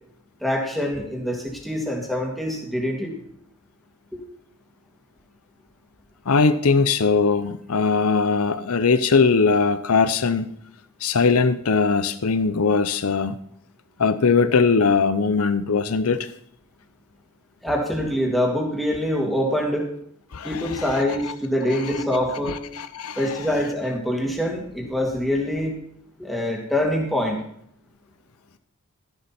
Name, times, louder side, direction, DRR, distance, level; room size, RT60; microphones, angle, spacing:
voice 1, 0.4-3.1 4.1-4.2 17.6-19.9 20.4-22.6 23.2-25.7 26.2-27.4, left 1 dB, ahead, 2.5 m, -24 dB
voice 2, 6.3-10.5 11.0-13.4 14.0-16.3 20.3-21.3 21.7-22.0 22.5-23.5, left 4 dB, 80° left, 0.7 m, -21 dB
13.0 x 11.5 x 4.4 m
head